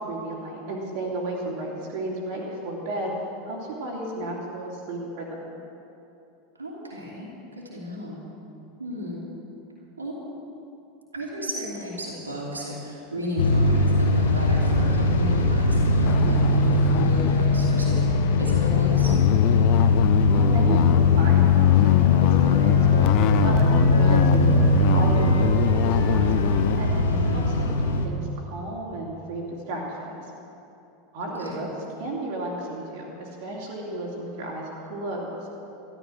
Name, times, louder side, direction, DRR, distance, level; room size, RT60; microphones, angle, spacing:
voice 1, 0.0-3.1 3.4-5.6 19.6-19.8 20.3-26.3 26.8-30.2 31.1-31.7 32.0-35.4, right 2 dB, 50° right, -3 dB, 2.9 m, -33 dB
voice 2, 6.6-8.2 8.8-9.2 10.0-10.2 11.1-19.2 27.0-27.5 31.4-31.6, equal, 80° right, -5 dB, 2.9 m, -34 dB
sound 1, 13.4-28.1, left 3 dB, 65° left, 1.1 m, -20 dB
sound 2, 16.0-26.8, left 14 dB, 45° left, 0.4 m, -26 dB
Wind instrument woodwind instrument, 21.6-27.9, equal, 80° left, 2.0 m, -40 dB
13.5 x 12.5 x 6.2 m, 2.9 s
figure-of-eight pair, 85°, 0 cm